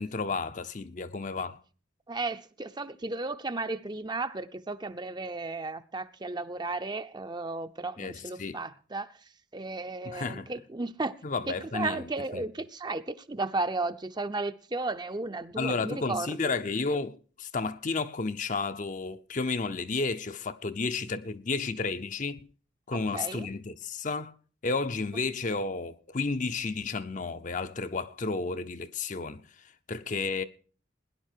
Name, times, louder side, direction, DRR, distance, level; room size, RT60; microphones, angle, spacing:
voice 1, 0.0-1.6 8.0-8.6 10.0-10.5 11.2-12.5 15.6-22.5 22.9-24.3 24.6-29.4 29.9-30.4, left 4 dB, 40° left, 0.7 m, -32 dB
voice 2, 2.1-9.2 9.5-11.1 11.5-16.6 22.9-23.5, right 3 dB, 20° right, 0.6 m, -34 dB
18.0 x 10.5 x 4.5 m
head